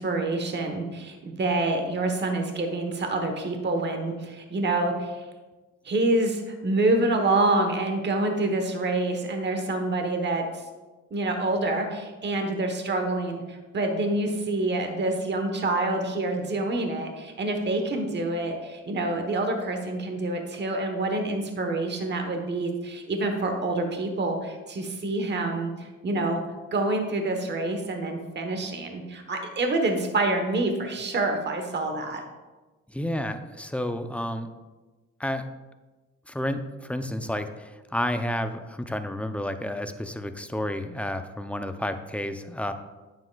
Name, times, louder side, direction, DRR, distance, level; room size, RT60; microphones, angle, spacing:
voice 1, 0.0-5.3 5.8-10.6 11.1-26.4 26.7-32.2, right 2 dB, 35° right, 5 dB, 1.1 m, -27 dB
voice 2, 32.9-34.5 35.2-35.5 36.3-42.7, left 1 dB, 5° left, 8 dB, 0.4 m, -31 dB
9.3 x 7.1 x 2.3 m, 1.2 s
cardioid pair, 90°, 30 cm